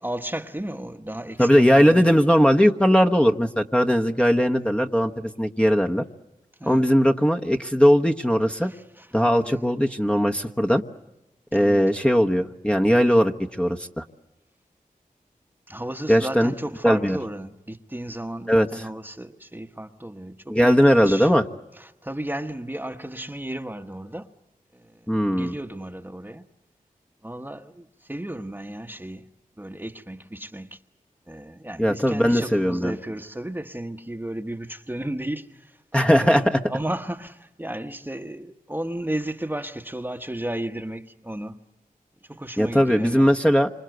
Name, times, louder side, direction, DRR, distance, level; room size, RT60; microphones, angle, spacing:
voice 1, 0.0-2.2 4.1-4.4 6.6-6.8 8.6-9.6 11.5-11.9 15.7-21.3 21.8-24.3 24.7-25.1 25.3-26.5 27.2-29.3 29.6-30.8 31.3-41.6 42.2-43.3, right 1 dB, 15° right, 1.2 m, -34 dB
voice 2, 1.4-6.0 6.7-8.7 9.1-10.8 11.5-14.0 16.1-16.5 16.8-17.2 18.5-18.7 20.5-21.4 25.1-25.5 31.8-32.9 35.9-36.6 42.6-43.7, equal, 5° left, 1.2 m, -19 dB
27.5 x 26.0 x 7.9 m
wide cardioid pair, 60°, 15 cm